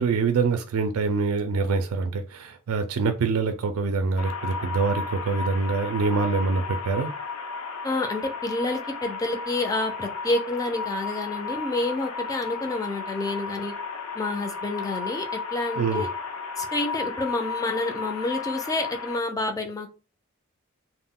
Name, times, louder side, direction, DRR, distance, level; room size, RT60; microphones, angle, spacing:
voice 1, 0.0-7.1 15.8-16.0, right 4 dB, 85° right, 0.3 m, -25 dB
sound 1, 4.2-19.2, left 4 dB, 75° left, 0.5 m, -34 dB
voice 2, 7.8-13.7 14.1-16.1 16.6-19.9, left 2 dB, 15° left, 0.4 m, -29 dB
2.2 x 2.0 x 3.6 m
head